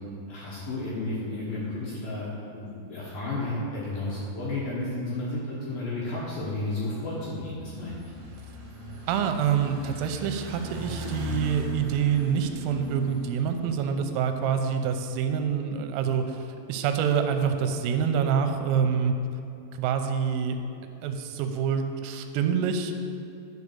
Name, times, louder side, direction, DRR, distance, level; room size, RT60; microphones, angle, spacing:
voice 1, 0.3-8.0, left 2 dB, 70° left, -6 dB, 2.3 m, -32 dB
sound 1, 7.7-14.0, left 1 dB, 60° right, 1.9 m, -38 dB
voice 2, 9.1-19.1 19.7-20.6 21.0-22.9, right 7 dB, 90° right, 6 dB, 3.3 m, -26 dB
11.0 x 5.1 x 6.7 m, 2.7 s
omnidirectional pair, 5.8 m